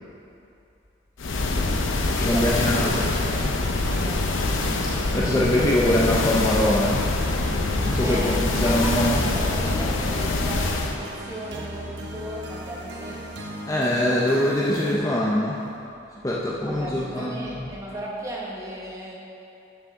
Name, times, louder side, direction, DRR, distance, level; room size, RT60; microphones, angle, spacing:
sound 1, 1.2-11.0, left 2 dB, 90° left, 0.7 m, -24 dB
voice 1, 1.3-1.8 2.2-4.4 8.0-8.4 8.6-13.3 16.6-19.2, right 1 dB, 15° right, -4 dB, 1.2 m, -36 dB
voice 2, 2.1-2.9 4.8-7.0 7.8-9.2 13.7-15.6 16.2-17.5, left 1 dB, 15° left, -5 dB, 0.6 m, -23 dB
sound 2, 5.9-15.0, right 1 dB, 65° right, 0.9 m, -37 dB
11.0 x 6.6 x 3.6 m, 2.7 s
head